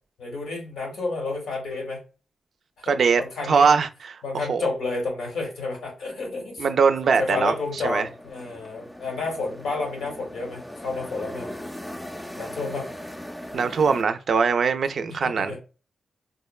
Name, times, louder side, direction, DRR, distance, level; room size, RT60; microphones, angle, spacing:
voice 1, 0.2-2.0 2.8-3.8 4.2-6.6 7.0-11.5 12.4-12.9 15.1-15.6, left 3 dB, 90° left, 1.4 m, -31 dB
voice 2, 2.9-3.2 3.5-4.2 4.5-4.6 6.6-7.5 7.8-8.0 13.5-15.5, right 5 dB, 70° right, 0.3 m, -21 dB
sound 1, 7.1-14.0, left 1 dB, 15° left, 0.4 m, -39 dB
3.6 x 2.1 x 2.3 m
cardioid pair, 70°, 0 cm